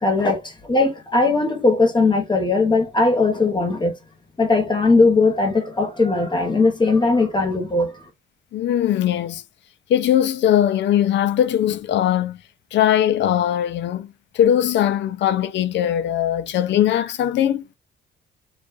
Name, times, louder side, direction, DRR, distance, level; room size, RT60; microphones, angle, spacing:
voice 1, 0.0-4.0 4.4-8.1, left 3 dB, 25° left, 1.0 m, -19 dB
voice 2, 8.5-9.4 9.9-12.4 12.7-14.1 14.3-17.7, left 10 dB, 65° left, 0.5 m, -20 dB
2.4 x 2.3 x 2.5 m
cardioid pair, 90°, 20 cm